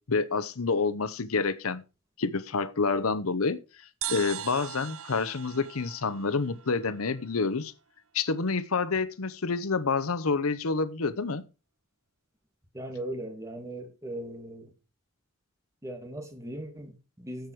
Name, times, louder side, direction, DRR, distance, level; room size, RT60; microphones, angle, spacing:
voice 1, 0.1-1.8 2.2-3.6 4.1-7.7 8.1-11.4, left 4 dB, 85° left, 0.8 m, -28 dB
sound 1, 4.0-7.5, right 12 dB, 70° right, 0.7 m, -40 dB
voice 2, 12.7-14.7 15.8-17.5, right 1 dB, 15° right, 2.4 m, -38 dB
11.5 x 7.8 x 4.8 m
head